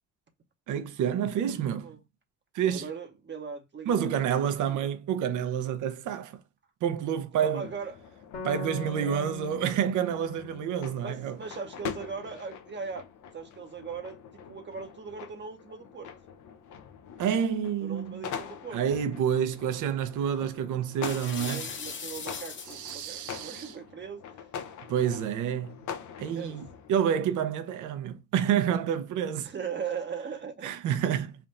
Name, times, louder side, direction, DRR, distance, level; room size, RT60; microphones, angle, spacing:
voice 1, 0.7-1.9 2.5-2.9 3.9-6.4 6.8-7.7 8.4-11.4 17.2-18.2 18.7-21.6 22.7-23.8 24.9-25.7 26.2-29.5 30.6-31.3, right 9 dB, 85° right, 0.7 m, -28 dB
voice 2, 1.4-2.0 2.6-4.9 7.4-8.0 9.0-9.3 11.0-13.1 13.3-14.2 14.5-16.1 17.8-18.8 21.4-24.2 26.3-26.6 29.4-30.7, right 6 dB, 35° right, 0.7 m, -39 dB
sound 1, 7.4-27.0, left 7 dB, 75° left, 0.7 m, -44 dB
sound 2, 8.3-11.8, left 4 dB, 60° left, 1.5 m, -42 dB
sound 3, 21.0-23.2, left 5 dB, 40° left, 0.9 m, -39 dB
3.4 x 2.5 x 4.0 m
cardioid pair, 90°, 30 cm